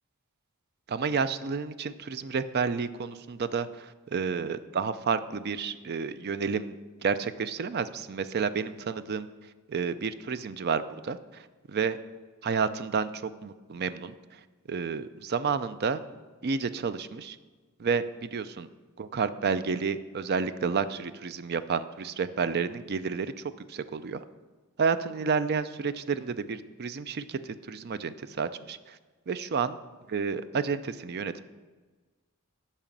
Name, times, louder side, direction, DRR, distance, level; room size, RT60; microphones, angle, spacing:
voice 1, 0.9-6.7 7.0-9.3 9.7-12.0 12.4-14.1 14.7-16.0 16.4-17.4 17.8-18.7 19.0-23.3 23.7-24.2 24.8-29.0 29.3-29.8 30.1-31.4, right 5 dB, 45° right, 12 dB, 0.4 m, -30 dB
9.0 x 5.6 x 7.2 m, 1.3 s
head